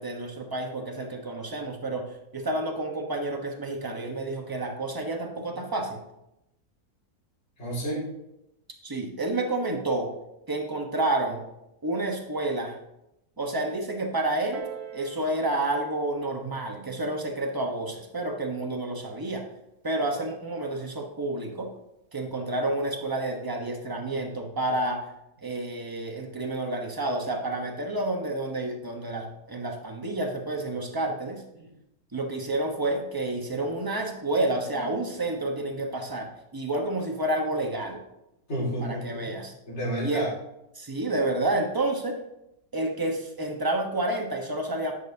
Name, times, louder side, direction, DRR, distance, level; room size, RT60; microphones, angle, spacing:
voice 1, 0.0-6.0 8.8-10.1 10.5-11.4 11.8-12.8 13.4-14.6 14.9-19.4 19.8-21.7 22.1-25.0 25.4-31.4 32.1-38.0 38.8-39.5 40.0-40.3 40.8-42.2 42.7-44.9, right 2 dB, 15° right, 2 dB, 1.0 m, -29 dB
voice 2, 7.6-8.1 31.6-31.7 38.5-39.4 39.7-40.3, equal, 45° left, -6 dB, 2.8 m, -31 dB
Piano, 14.5-19.7 20.5-20.6, right 7 dB, 55° right, 1.1 m, -46 dB
10.5 x 7.0 x 2.8 m, 0.85 s
omnidirectional pair, 1.7 m